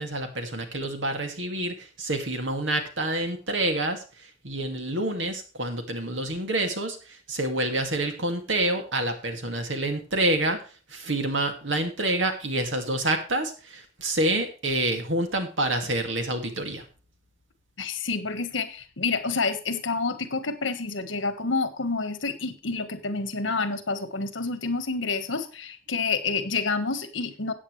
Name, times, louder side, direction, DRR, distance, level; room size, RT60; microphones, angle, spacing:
voice 1, 0.0-16.8, right 1 dB, 70° right, 5 dB, 2.3 m, -28 dB
voice 2, 17.8-27.5, left 4 dB, 75° left, 10 dB, 1.5 m, -28 dB
14.5 x 8.7 x 3.3 m, 0.34 s
head